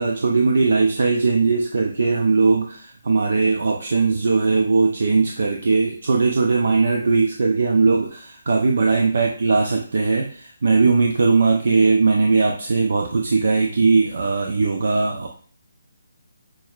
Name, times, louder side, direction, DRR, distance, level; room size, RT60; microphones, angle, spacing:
voice 1, 0.0-15.3, right 4 dB, 65° right, 1 dB, 0.5 m, -19 dB
6.2 x 2.1 x 2.4 m, 0.43 s
hypercardioid pair, 160°, 0 cm